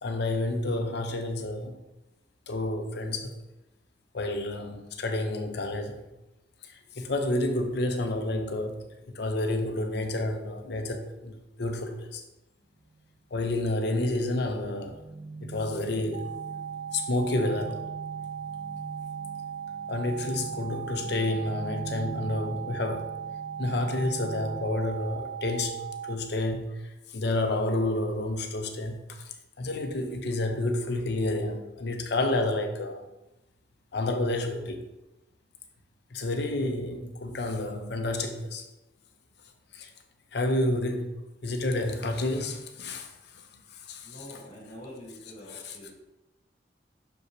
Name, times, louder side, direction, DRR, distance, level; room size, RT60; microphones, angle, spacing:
voice 1, 0.0-1.8 2.5-3.3 4.1-6.0 6.7-12.2 13.3-15.0 15.4-16.3 16.9-17.8 19.9-23.1 23.6-26.7 27.1-29.2 29.6-33.0 33.9-34.8 36.1-38.6 39.7-39.9 40.3-43.1 43.9-44.2 45.5-45.8, left 2 dB, 65° left, 0.8 m, -30 dB
sound 1, 12.8-13.0 13.4-24.6, right 3 dB, 15° right, 0.6 m, -43 dB
sound 2, 16.1-26.1, right 8 dB, 75° right, 0.5 m, -38 dB
voice 2, 44.0-45.9, left 1 dB, 45° left, 2.1 m, -45 dB
6.3 x 5.3 x 3.2 m
head